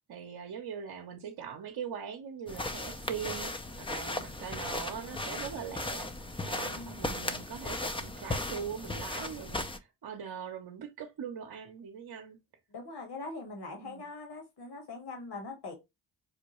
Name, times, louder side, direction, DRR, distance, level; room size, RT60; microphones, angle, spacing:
voice 1, 0.1-6.1 6.4-12.4 13.8-14.0, right 7 dB, 55° right, 0.8 m, -41 dB
sound 1, 2.5-9.8, left 2 dB, 10° left, 0.4 m, -36 dB
voice 2, 6.7-7.2 12.7-15.7, left 3 dB, 55° left, 1.6 m, -42 dB
5.0 x 2.2 x 3.0 m
supercardioid pair, 55°, 47 cm